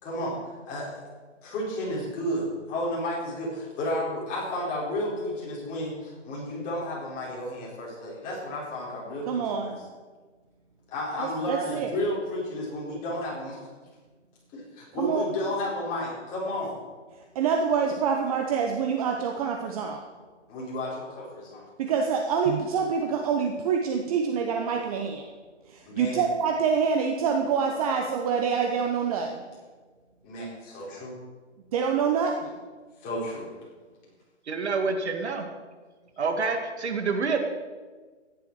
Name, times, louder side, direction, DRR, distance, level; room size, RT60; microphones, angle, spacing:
voice 1, 0.0-0.4 0.6-1.0 1.4-9.7 10.9-13.6 14.5-16.8 20.5-21.7 25.8-26.3 30.2-31.2 33.0-33.5, left 1 dB, 20° left, -5 dB, 4.4 m, -32 dB
voice 2, 9.3-9.8 11.2-11.9 15.0-15.2 17.3-20.0 21.8-25.2 25.7-29.4 31.7-32.5, right 6 dB, 30° right, 3 dB, 1.0 m, -26 dB
voice 3, 34.5-35.5 36.2-37.4, right 4 dB, 65° right, 5 dB, 2.0 m, -27 dB
14.0 x 10.5 x 4.8 m, 1.4 s
hypercardioid pair, 140°, 36 cm